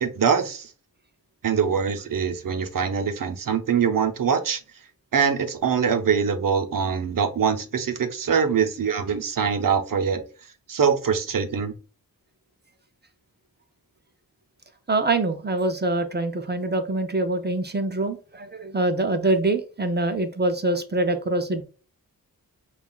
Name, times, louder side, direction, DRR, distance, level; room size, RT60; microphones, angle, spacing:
voice 1, 0.0-0.7 1.4-4.6 5.1-10.2 10.7-11.7, right 6 dB, 65° right, 0.7 m, -23 dB
voice 2, 14.9-21.6, right 2 dB, 30° right, 0.5 m, -24 dB
5.4 x 2.4 x 2.3 m
wide cardioid pair, 90°, 36 cm